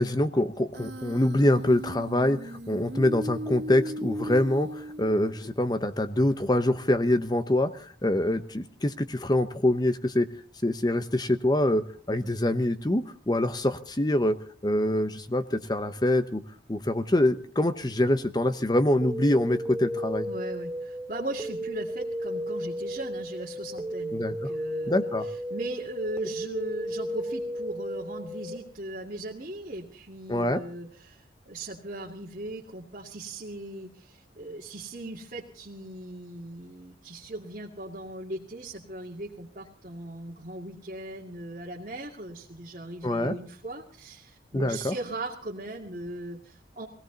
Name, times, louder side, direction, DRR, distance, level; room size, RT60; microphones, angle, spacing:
voice 1, 0.0-10.3 10.6-14.4 14.6-16.4 16.7-20.3 24.1-24.5 24.9-25.3 30.3-30.6 43.0-43.4 44.5-44.9, left 1 dB, 20° left, 10 dB, 0.9 m, -25 dB
Human voice, 0.7-5.7, equal, 65° right, 1.4 m, -37 dB
sound 1, 19.0-28.6, equal, 15° right, 1.9 m, -34 dB
voice 2, 20.2-46.9, right 2 dB, 45° right, -4 dB, 2.3 m, -38 dB
21.0 x 17.0 x 4.0 m, 0.43 s
head